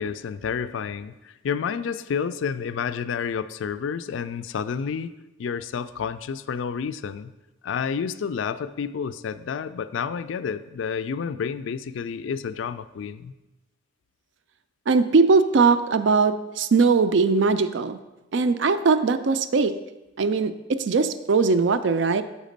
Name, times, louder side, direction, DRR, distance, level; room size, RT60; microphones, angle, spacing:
voice 1, 0.0-5.1 5.4-7.3 7.6-13.3, left 6 dB, 70° left, 13 dB, 0.3 m, -30 dB
voice 2, 14.9-18.0 18.3-19.7 20.2-22.2, right 4 dB, 65° right, 11 dB, 0.4 m, -20 dB
7.2 x 5.0 x 5.2 m, 1.0 s
head